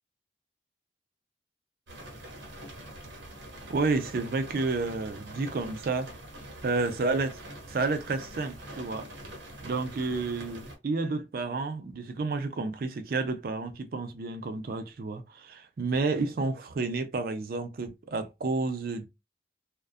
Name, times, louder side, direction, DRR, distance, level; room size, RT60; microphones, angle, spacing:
sound 1, 1.9-10.8, right 1 dB, 85° right, 0.9 m, -44 dB
voice 1, 3.7-6.1 6.6-7.4 7.7-9.1 9.6-19.1, right 3 dB, 50° right, 0.4 m, -30 dB
2.4 x 2.1 x 2.4 m
head